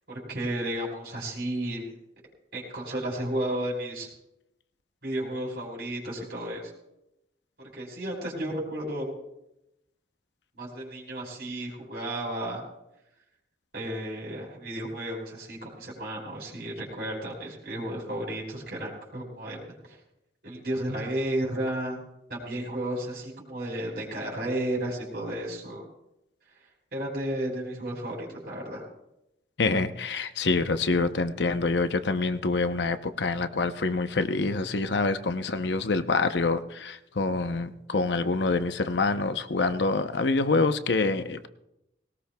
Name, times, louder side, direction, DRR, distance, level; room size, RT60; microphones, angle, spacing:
voice 1, 0.1-1.8 2.5-4.1 5.0-6.7 7.6-9.1 10.5-12.6 13.7-19.6 19.9-20.0 20.4-22.0 22.3-25.8 26.9-28.8, right 1 dB, 60° right, -3 dB, 4.3 m, -33 dB
voice 2, 29.6-41.5, left 3 dB, 75° left, 10 dB, 0.8 m, -26 dB
20.5 x 18.5 x 2.3 m, 0.87 s
head